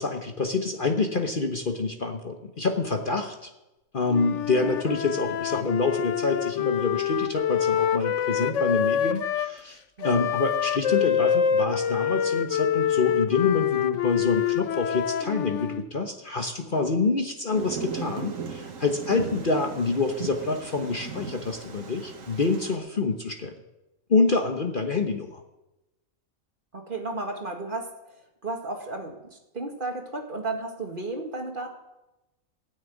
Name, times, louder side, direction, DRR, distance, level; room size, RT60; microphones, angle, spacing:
voice 1, 0.0-3.5 3.9-23.5 24.1-25.4, left 3 dB, 40° left, 4 dB, 1.2 m, -27 dB
Wind instrument woodwind instrument, 4.1-9.5 10.0-15.9, left 9 dB, 65° left, 1.0 m, -26 dB
Thunder, 17.5-22.8, right 6 dB, 70° right, 1.6 m, -37 dB
voice 2, 26.7-27.9 28.4-31.7, right 2 dB, 40° right, 2 dB, 1.9 m, -33 dB
16.5 x 6.7 x 9.3 m, 0.99 s
omnidirectional pair, 1.4 m